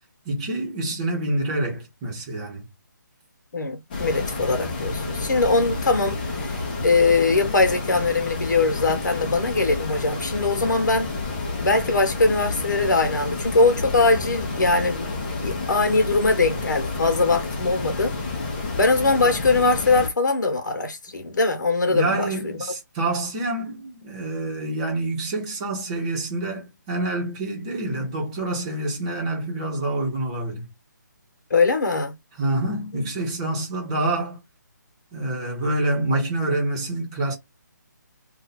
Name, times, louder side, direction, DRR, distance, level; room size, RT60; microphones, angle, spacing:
voice 1, 0.2-2.7 21.9-30.7 32.4-34.4 35.1-37.3, right 2 dB, 20° right, 1.0 m, -27 dB
voice 2, 3.5-11.1 11.6-15.1 15.4-18.1 18.8-22.3 31.5-32.1 32.9-33.1, left 3 dB, 70° left, 1.2 m, -21 dB
sound 1, 3.9-20.1, left 3 dB, 30° left, 0.8 m, -30 dB
2.7 x 2.5 x 4.1 m
hypercardioid pair, 165°, 10 cm